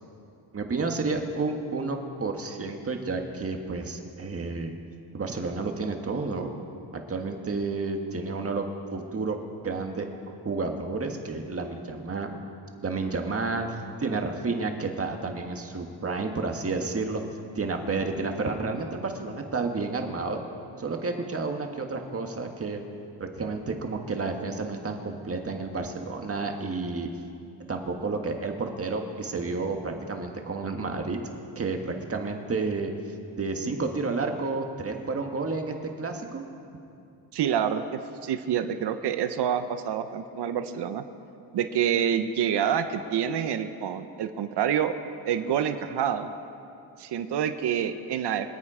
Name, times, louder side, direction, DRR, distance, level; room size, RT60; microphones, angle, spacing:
voice 1, 0.5-4.7 5.1-6.5 7.1-9.4 9.6-12.4 12.8-17.2 17.5-20.4 20.8-22.8 23.2-27.1 27.7-31.2 31.5-32.9 33.4-36.4, right 3 dB, 30° right, 4 dB, 1.7 m, -31 dB
voice 2, 37.3-41.0 41.5-44.9 45.2-46.3 47.0-48.5, right 9 dB, 65° right, 9 dB, 0.9 m, -27 dB
25.0 x 8.7 x 5.0 m, 2.6 s
cardioid pair, 105°, 43 cm